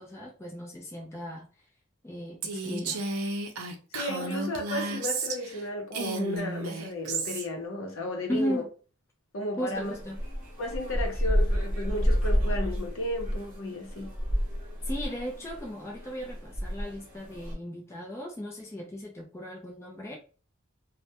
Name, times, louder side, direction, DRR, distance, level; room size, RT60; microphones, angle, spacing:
voice 1, 0.0-1.5 2.0-3.0 8.3-8.7 9.6-10.2 14.8-20.2, equal, 10° left, 0.3 m, -36 dB
Female speech woman speaking, 2.4-5.6 5.9-7.5, right 3 dB, 80° right, 0.5 m, -33 dB
voice 2, 3.9-8.6 9.3-9.9 10.6-14.1, left 1 dB, 65° left, 0.7 m, -34 dB
sound 1, 9.8-17.5, equal, 35° right, 0.8 m, -30 dB
2.1 x 2.0 x 2.8 m
head